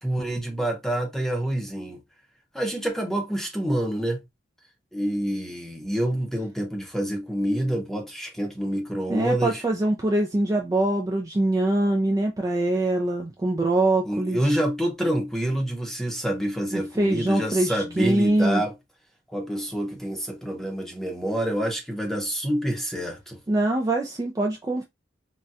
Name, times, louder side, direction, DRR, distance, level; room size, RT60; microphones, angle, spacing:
voice 1, 0.0-2.0 2.5-4.2 4.9-9.6 14.1-18.7 19.3-23.4, right 1 dB, ahead, 0.7 m, -27 dB
voice 2, 9.1-14.5 16.7-18.6 23.5-24.8, right 2 dB, 20° right, 0.4 m, -23 dB
4.0 x 2.2 x 2.4 m
head